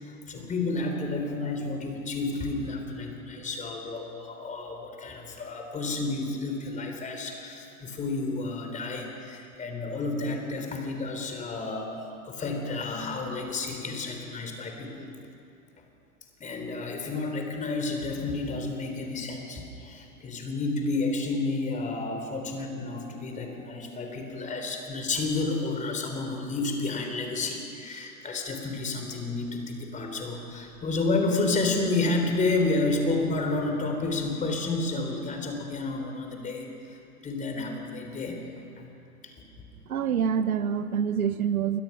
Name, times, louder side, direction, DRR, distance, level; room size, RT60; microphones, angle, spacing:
voice 1, 0.0-15.1 16.4-38.4 38.8-38.9 39.2-39.4, left 3 dB, 15° left, 4 dB, 3.6 m, -31 dB
voice 2, 39.9-41.8, right 8 dB, 65° right, 13 dB, 1.1 m, -26 dB
27.5 x 22.5 x 5.9 m, 2.6 s
figure-of-eight pair, 115°, 46 cm